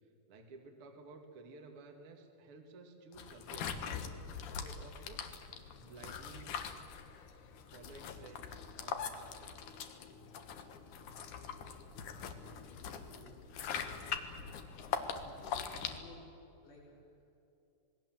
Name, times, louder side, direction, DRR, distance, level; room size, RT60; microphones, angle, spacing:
voice 1, 0.3-5.2 5.8-6.6 7.1-7.3 7.6-9.8, right 3 dB, 40° right, 3 dB, 2.5 m, -54 dB
sound 1, 3.1-16.0, left 7 dB, 60° left, 2.5 m, -42 dB
voice 2, 12.8-14.4 15.2-16.3 16.6-17.0, left 3 dB, 90° left, -3 dB, 7.1 m, -56 dB
26.5 x 20.5 x 7.6 m, 2.6 s
omnidirectional pair, 4.8 m